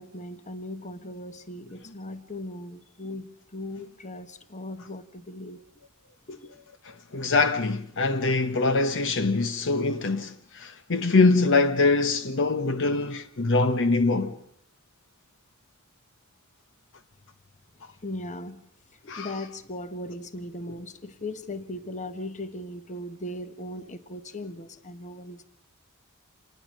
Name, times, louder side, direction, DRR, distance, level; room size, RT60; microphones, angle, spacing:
voice 1, 0.0-5.6 6.3-6.5 18.0-18.6 18.9-25.4, left 1 dB, 35° left, 1.3 m, -38 dB
voice 2, 6.8-14.3 19.1-19.3, left 3 dB, 60° left, 1.0 m, -23 dB
27.5 x 20.0 x 6.5 m
head